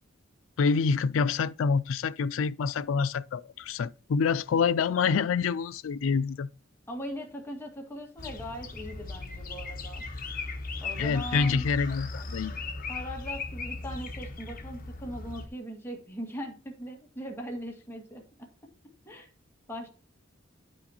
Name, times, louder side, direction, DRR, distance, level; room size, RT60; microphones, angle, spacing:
voice 1, 0.6-6.5 11.0-12.5, left 5 dB, 80° left, 0.4 m, -27 dB
voice 2, 6.9-10.0 10.8-11.7 12.9-18.5 19.1-19.3 19.7-19.9, equal, 10° left, 1.9 m, -40 dB
sound 1, 8.2-15.5, left 3 dB, 45° left, 1.3 m, -37 dB
9.9 x 6.3 x 2.9 m
head